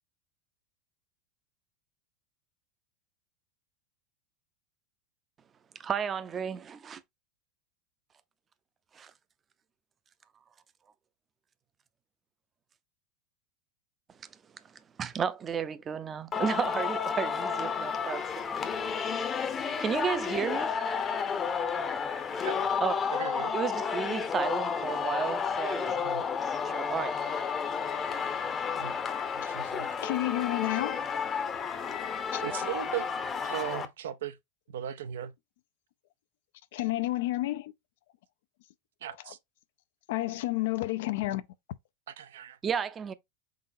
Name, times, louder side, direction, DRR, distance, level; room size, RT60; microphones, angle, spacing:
voice 1, 5.8-7.0 8.9-9.1 15.0-18.6 19.8-20.8 22.3-22.4 22.8-23.0 23.5-26.1 26.4-27.1 42.6-43.1, right 7 dB, 25° right, 0.5 m, -33 dB
Singing, 16.3-33.9, left 6 dB, 25° left, 0.7 m, -31 dB
voice 2, 23.1-23.5 26.0-26.2 28.8-29.0 29.3-29.9 32.4-33.1 33.4-34.4 34.7-35.3 39.0-39.4 42.1-42.6, right 10 dB, 90° right, 0.5 m, -37 dB
voice 3, 30.0-31.0 32.3-32.4 36.7-37.7 40.1-41.4, left 17 dB, 75° left, 0.4 m, -30 dB
3.9 x 3.8 x 2.6 m
supercardioid pair, 120°, 0 cm